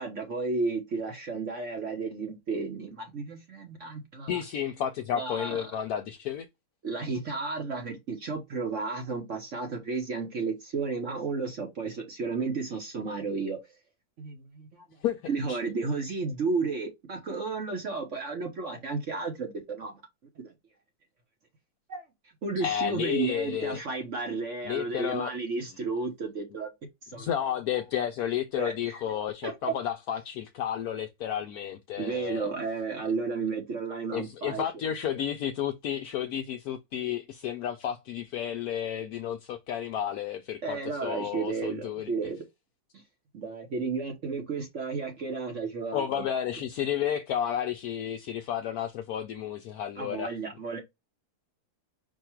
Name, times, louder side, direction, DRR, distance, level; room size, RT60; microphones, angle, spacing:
voice 1, 0.0-4.4 5.1-5.7 6.8-13.6 14.2-14.8 15.3-20.0 20.4-20.5 21.9-22.0 22.4-26.7 27.0-27.3 28.6-29.0 29.4-29.5 32.0-34.6 40.6-42.4 42.9-43.0 43.3-46.2 50.0-50.8, right 4 dB, 50° right, 1.2 m, -33 dB
voice 2, 4.3-6.5 15.0-15.6 22.6-23.8 24.6-25.3 27.2-32.5 34.1-42.1 45.9-50.3, left 9 dB, 70° left, 1.0 m, -32 dB
4.7 x 2.4 x 4.3 m
omnidirectional pair, 1.8 m